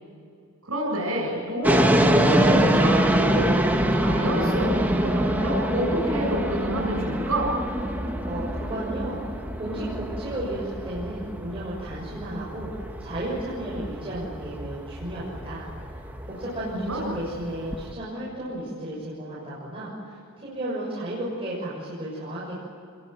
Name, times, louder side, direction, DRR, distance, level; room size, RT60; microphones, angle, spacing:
voice 1, 0.6-3.5 3.9-7.5 16.7-17.2, equal, 80° right, -4 dB, 7.7 m, -28 dB
sound 1, 1.6-17.9, right 1 dB, 10° right, 1.8 m, -25 dB
voice 2, 8.2-16.0 16.3-22.5, right 1 dB, 25° right, -7 dB, 6.6 m, -34 dB
28.0 x 21.5 x 9.3 m, 2.4 s
head